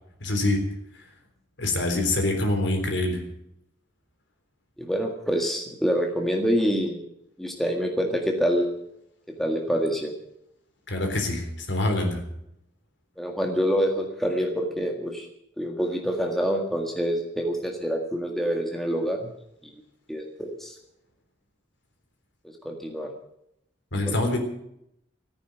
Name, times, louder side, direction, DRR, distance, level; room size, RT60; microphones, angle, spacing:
voice 1, 0.2-0.6 1.6-3.2 10.9-12.2 23.9-24.4, left 2 dB, 70° left, 4 dB, 3.6 m, -25 dB
voice 2, 4.8-7.0 7.4-8.7 9.4-10.1 13.2-15.3 15.6-19.3 20.1-20.7 22.6-23.1 24.0-24.1, equal, ahead, 1 dB, 1.7 m, -26 dB
14.5 x 9.6 x 8.9 m, 0.78 s
head